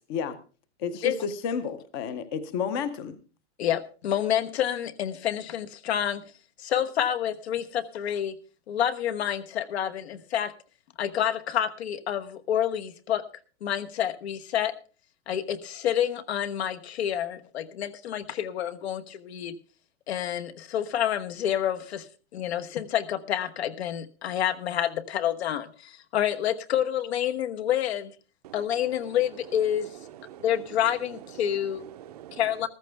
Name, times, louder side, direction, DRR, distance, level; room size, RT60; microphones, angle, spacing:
voice 1, 0.8-3.2, left 6 dB, 20° left, 14 dB, 0.6 m, -31 dB
voice 2, 3.6-6.2 6.6-8.3 8.7-10.5 11.0-13.2 13.6-14.7 15.3-19.5 20.1-22.1 22.3-28.1 28.5-29.9 30.4-31.8 32.4-32.7, left 10 dB, 70° left, 11 dB, 1.2 m, -28 dB
voice 3, 28.4-32.7, right 11 dB, 35° right, 11 dB, 0.6 m, -46 dB
14.5 x 14.0 x 3.4 m, 0.36 s
supercardioid pair, 175°, 34 cm